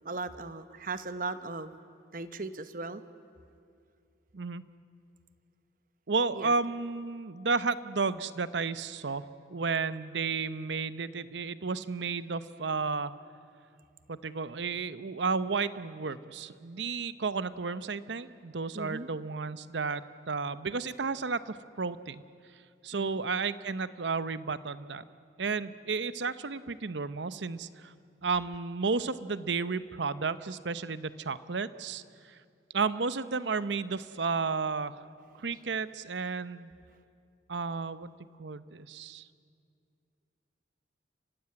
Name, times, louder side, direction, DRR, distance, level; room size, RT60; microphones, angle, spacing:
voice 1, 0.0-1.8 2.1-3.0 6.3-6.5 18.7-19.1 22.9-23.2, right 3 dB, 50° right, 12 dB, 1.0 m, -38 dB
voice 2, 6.1-13.1 14.1-22.2 22.8-25.0 25.4-27.9 28.2-32.4 32.7-35.0 35.4-36.7 37.5-38.1 38.4-39.3, right 4 dB, 75° right, 15 dB, 0.8 m, -32 dB
30.0 x 16.0 x 9.7 m, 2.3 s
head